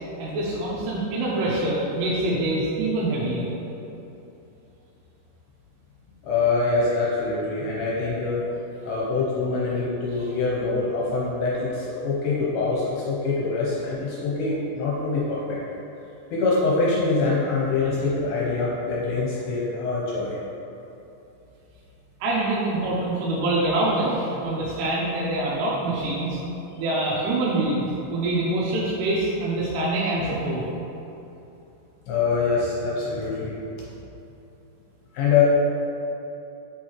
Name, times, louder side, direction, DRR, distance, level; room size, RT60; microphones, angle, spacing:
voice 1, 0.2-3.5 22.2-26.4 26.8-30.6, right 2 dB, 85° right, -6 dB, 2.9 m, -25 dB
voice 2, 6.2-8.4 8.8-15.6 16.3-20.4 32.1-33.6 35.1-35.4, left 4 dB, 75° left, -6 dB, 2.4 m, -24 dB
6.3 x 6.2 x 3.1 m, 2.9 s
omnidirectional pair, 4.8 m